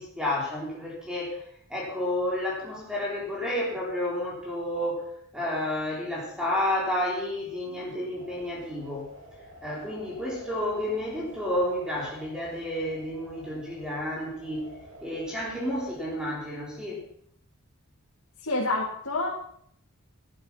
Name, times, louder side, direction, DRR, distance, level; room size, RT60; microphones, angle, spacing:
voice 1, 0.0-9.1 9.6-14.7 15.0-17.0, left 1 dB, 5° right, -3 dB, 3.6 m, -31 dB
sound 1, 8.1-16.3, equal, 90° right, 5.5 m, -49 dB
voice 2, 18.4-19.3, left 2 dB, 75° left, -3 dB, 2.7 m, -27 dB
14.0 x 12.0 x 5.8 m, 0.67 s
head